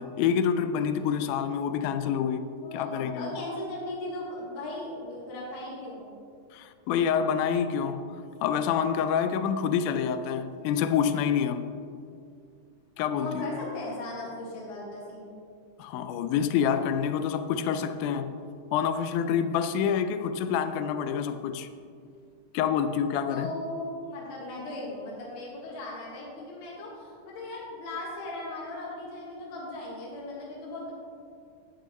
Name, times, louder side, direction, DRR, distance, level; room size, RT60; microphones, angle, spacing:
voice 1, 0.0-2.4 2.7-3.3 6.5-11.7 13.0-13.5 15.8-18.3 18.7-21.7 22.5-23.5, left 7 dB, 80° left, 1.9 m, -27 dB
voice 2, 2.6-6.1 13.2-15.3 23.3-30.9, left 2 dB, 60° left, 2.8 m, -37 dB
12.5 x 8.9 x 3.1 m
omnidirectional pair, 3.9 m